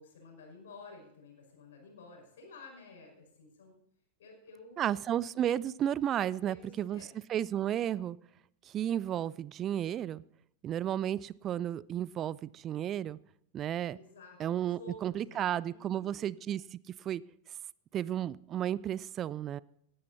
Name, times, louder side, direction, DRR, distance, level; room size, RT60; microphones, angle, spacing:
voice 1, 0.0-3.7 4.2-5.0 6.4-7.1 13.9-16.4, left 3 dB, 60° left, 1 dB, 5.6 m, -52 dB
voice 2, 4.8-7.0 7.3-8.2 8.7-10.2 10.6-13.2 13.5-14.0 14.4-17.2 17.9-19.6, right 10 dB, 30° right, 22 dB, 0.4 m, -33 dB
18.0 x 12.0 x 4.2 m, 0.72 s
figure-of-eight pair, 90°, 0 cm